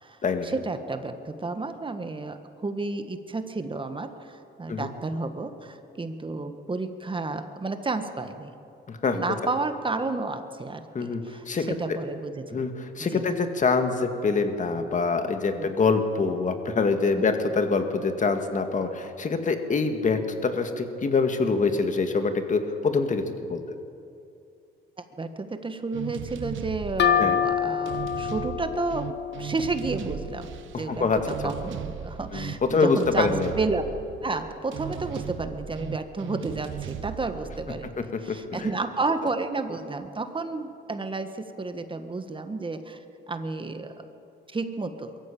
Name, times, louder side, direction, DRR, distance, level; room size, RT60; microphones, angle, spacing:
voice 1, 0.4-8.5 9.1-12.6 13.1-13.2 15.6-15.7 25.2-33.8 34.2-38.0 38.2-43.0 43.3-44.1 44.5-45.2, right 3 dB, 25° right, 8 dB, 1.5 m, -31 dB
voice 2, 8.9-9.2 10.9-12.0 12.5-23.6 27.2-27.4 30.7-31.3 32.3-33.5 38.0-38.7, left 4 dB, 40° left, 7 dB, 2.0 m, -25 dB
sound 1, 25.9-38.7, right 9 dB, 75° right, 1.0 m, -38 dB
sound 2, 27.0-30.6, left 8 dB, 60° left, 1.4 m, -27 dB
22.5 x 14.5 x 8.6 m, 2.6 s
cardioid pair, 90°, 20 cm